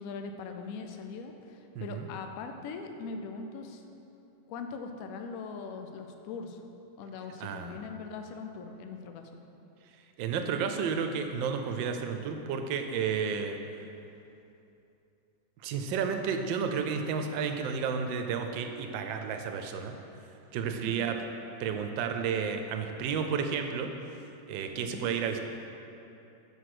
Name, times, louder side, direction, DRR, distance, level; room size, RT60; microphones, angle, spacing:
voice 1, 0.0-3.8 4.5-6.6 7.0-9.2 20.8-21.1 24.8-25.1, left 4 dB, 70° left, 5 dB, 0.8 m, -41 dB
voice 2, 1.7-2.1 7.4-7.8 10.2-13.6 15.6-19.9 20.5-21.2 21.6-23.9 24.5-25.4, right 6 dB, 85° right, 6 dB, 1.3 m, -31 dB
5.3 x 4.8 x 6.0 m, 2.8 s
omnidirectional pair, 2.0 m